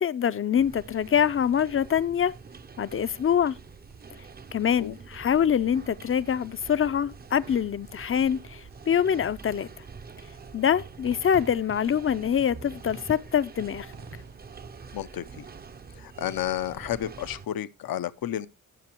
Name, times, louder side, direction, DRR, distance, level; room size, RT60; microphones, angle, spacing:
voice 1, 0.0-2.3 2.8-3.6 4.5-9.7 10.5-13.9, left 8 dB, 40° left, 0.4 m, -25 dB
sound 1, 0.6-17.5, right 5 dB, 30° right, 0.5 m, -46 dB
sound 2, 1.9-14.3, right 4 dB, 85° right, 3.5 m, -53 dB
voice 2, 14.9-15.5 16.0-18.5, left 11 dB, 80° left, 0.6 m, -31 dB
17.0 x 6.8 x 2.9 m
wide cardioid pair, 125°, 35 cm